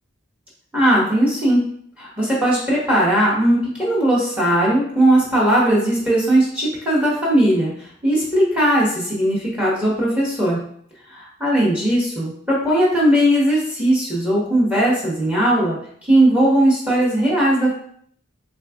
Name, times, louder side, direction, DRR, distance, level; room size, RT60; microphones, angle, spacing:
voice 1, 0.7-1.6 2.0-10.6 11.4-17.7, right 1 dB, 5° right, -5 dB, 1.0 m, -18 dB
3.4 x 2.3 x 3.5 m, 0.63 s
head